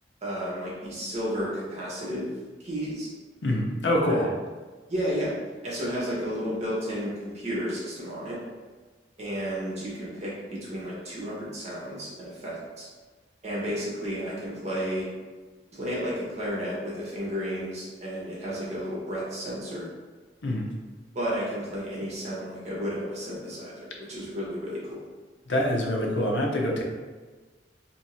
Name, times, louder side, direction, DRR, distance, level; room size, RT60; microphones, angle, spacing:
voice 1, 0.2-2.3 2.6-3.1 4.0-4.3 4.9-5.3 5.6-8.4 9.2-12.9 13.4-15.1 15.7-19.9 21.1-25.0, equal, 40° right, -7 dB, 1.1 m, -32 dB
voice 2, 3.4-4.3 20.4-20.7 25.5-26.8, left 1 dB, 85° left, 0 dB, 0.7 m, -25 dB
2.8 x 2.7 x 4.3 m, 1.3 s
head